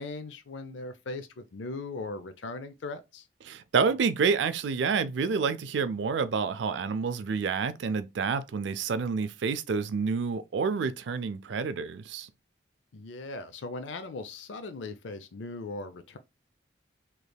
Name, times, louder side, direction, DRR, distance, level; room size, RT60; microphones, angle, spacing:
voice 1, 0.0-3.2 12.9-16.2, left 3 dB, 85° left, 0.5 m, -39 dB
voice 2, 3.4-12.3, right 5 dB, 75° right, 0.4 m, -28 dB
3.3 x 3.1 x 2.3 m
head